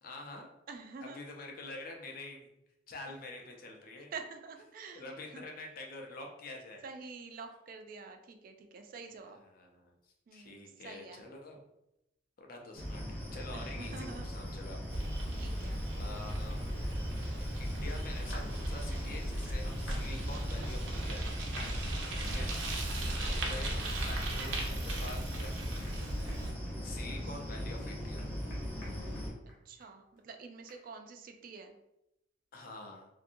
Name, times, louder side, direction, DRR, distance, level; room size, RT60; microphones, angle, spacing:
voice 1, 0.0-0.5 1.0-2.5 2.9-4.1 5.0-6.8 9.4-10.0 10.3-11.6 12.4-15.0 15.3-16.6 17.6-21.6 22.2-22.5 23.2-25.9 26.8-28.3 32.5-33.1, left 2 dB, 50° left, 1 dB, 0.5 m, -47 dB
voice 2, 0.7-1.2 4.1-5.5 6.8-9.4 10.3-11.2 13.5-14.3 15.4-15.8 23.0-23.5 24.1-24.5 29.7-31.7, right 4 dB, 50° right, 6 dB, 0.3 m, -47 dB
sound 1, 12.7-29.3, equal, 10° left, 0.6 m, -40 dB
Bicycle, 14.9-26.5, right 1 dB, 85° right, 0.6 m, -37 dB
sound 2, 18.3-18.5 19.9-20.1 21.6-21.8 22.3-22.4 23.2-23.4 23.8-23.9 24.6-24.7 25.0-25.1 25.4-25.6 25.9-26.0 26.3-26.7 27.1-27.2 27.5-29.9 30.2-30.3 30.7-30.8, left 1 dB, 80° left, 1.0 m, -51 dB
2.7 x 2.5 x 2.5 m, 0.86 s
head